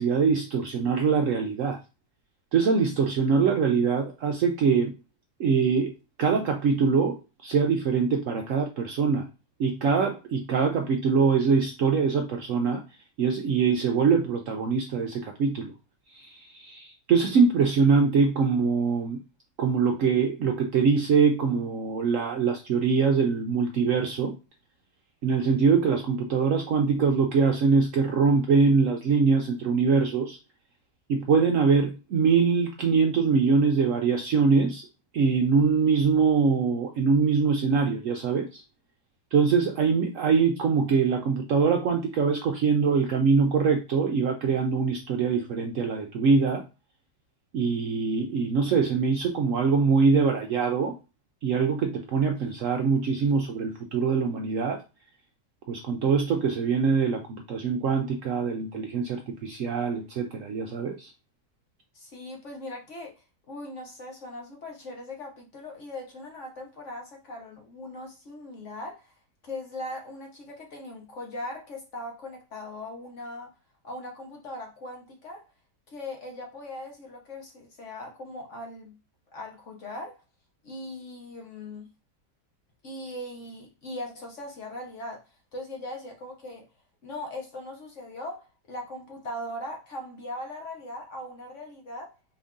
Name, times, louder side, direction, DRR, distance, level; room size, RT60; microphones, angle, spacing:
voice 1, 0.0-1.8 2.5-4.9 5.4-5.9 6.2-9.3 9.6-12.8 13.2-15.7 16.1-19.2 19.6-24.3 25.2-30.4 31.1-34.8 35.1-38.6 39.3-46.6 47.5-50.9 51.4-54.8 55.7-61.1, right 5 dB, 70° right, 0.8 m, -23 dB
voice 2, 61.9-69.1 69.4-73.5 73.8-75.5 75.9-78.9 79.3-80.2 80.6-81.9 82.8-85.2 85.5-86.7 87.0-92.1, left 1 dB, 50° left, 1.1 m, -39 dB
4.5 x 2.6 x 3.6 m
omnidirectional pair, 1.8 m